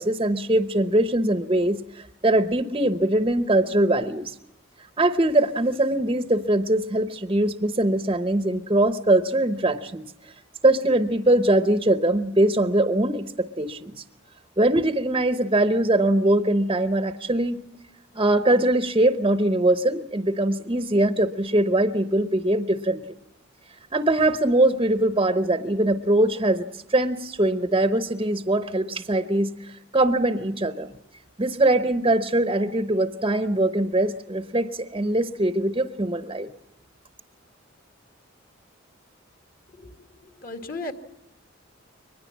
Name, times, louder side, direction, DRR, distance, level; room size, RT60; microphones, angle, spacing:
voice 1, 0.0-4.4 5.0-10.3 10.6-14.0 14.6-17.6 18.1-23.0 23.9-30.9 31.4-36.5, right 1 dB, 25° right, 9 dB, 0.9 m, -22 dB
voice 2, 39.7-40.9, left 2 dB, 45° left, 7 dB, 2.0 m, -36 dB
23.0 x 20.5 x 7.3 m, 0.86 s
head